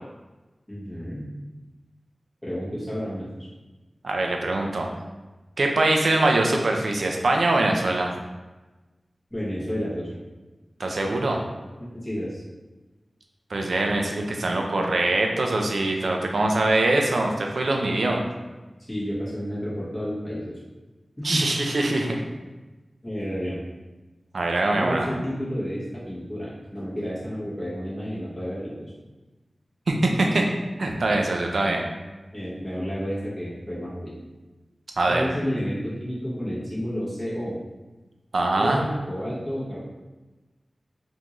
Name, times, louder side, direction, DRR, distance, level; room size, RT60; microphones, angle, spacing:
voice 1, 0.7-1.3 2.4-3.5 9.3-10.2 11.8-12.4 18.9-20.6 21.2-21.4 23.0-23.6 24.8-28.9 32.3-34.1 35.1-37.6 38.6-39.8, equal, 15° left, -8 dB, 1.3 m, -31 dB
voice 2, 4.0-4.9 5.6-8.1 10.8-11.4 13.5-18.2 21.2-22.2 24.3-25.1 29.9-30.5 30.8-31.8 35.0-35.2 38.3-38.8, right 2 dB, 85° right, 2 dB, 0.4 m, -23 dB
3.5 x 2.6 x 3.0 m, 1.2 s
wide cardioid pair, 80°, 0 cm